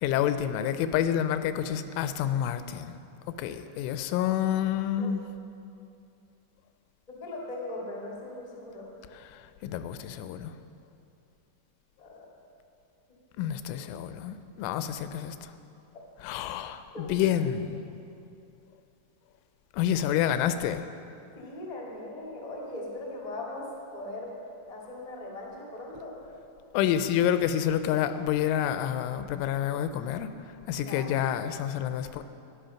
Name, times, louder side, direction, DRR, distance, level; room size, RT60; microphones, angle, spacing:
voice 1, 0.0-3.0 3.3-5.2 9.3-10.5 13.4-15.5 16.2-17.8 19.7-20.9 26.7-30.3 30.7-32.2, left 10 dB, 90° left, 10 dB, 3.1 m, -28 dB
voice 2, 7.1-8.9 12.0-12.3 16.9-17.2 21.3-24.3 24.7-26.1 30.7-31.1, left 2 dB, 75° left, -3 dB, 0.3 m, -39 dB
13.5 x 10.5 x 5.7 m, 2.6 s
omnidirectional pair, 5.5 m